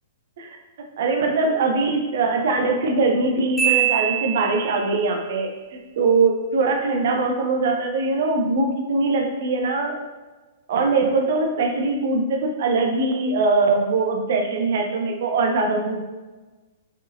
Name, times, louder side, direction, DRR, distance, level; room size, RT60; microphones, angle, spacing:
voice 1, 1.0-9.9 10.7-16.0, right 3 dB, 50° right, 3 dB, 0.7 m, -22 dB
Marimba xylophone, 3.6-5.0, right 12 dB, ahead, 1.5 m, -23 dB
5.1 x 4.0 x 2.6 m, 1.2 s
figure-of-eight pair, 105°, 0 cm